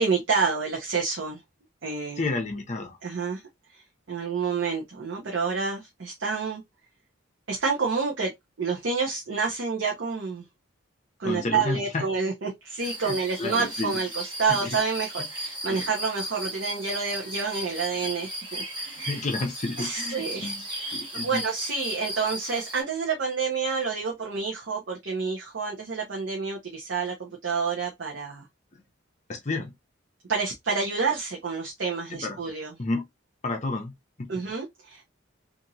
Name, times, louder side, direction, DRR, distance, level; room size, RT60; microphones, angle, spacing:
voice 1, 0.0-1.4 1.8-2.2 3.0-3.4 3.7-6.6 7.5-8.3 8.6-10.5 11.2-19.2 19.8-28.5 30.3-32.7 34.3-35.1, right 5 dB, 65° right, 0.7 m, -29 dB
voice 2, 2.2-3.0 11.2-12.1 13.0-14.0 14.5-14.8 15.7-15.8 19.1-20.6 20.9-21.4 28.7-28.8 29.3-29.7 32.1-32.4 32.8-33.1 33.4-33.9 34.2-34.4, left 3 dB, 35° left, 0.6 m, -31 dB
sound 1, 12.8-22.8, right 1 dB, 25° right, 1.1 m, -36 dB
2.9 x 2.6 x 2.6 m
head